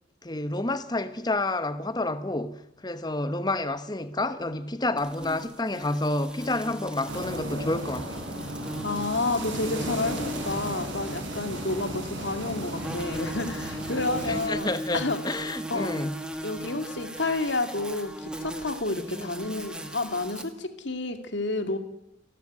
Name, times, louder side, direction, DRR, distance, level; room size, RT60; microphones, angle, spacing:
voice 1, 0.2-8.2 14.2-16.2 19.1-19.3, left 2 dB, 20° left, 1.1 m, -29 dB
sound 1, 5.0-20.4, right 1 dB, 5° right, 2.0 m, -38 dB
sound 2, 7.1-14.5, right 1 dB, 75° right, 6.4 m, -35 dB
voice 2, 8.8-14.7 14.9-15.2 15.7-15.9 16.4-21.8, left 2 dB, 70° left, 2.4 m, -30 dB
30.0 x 12.5 x 9.5 m
head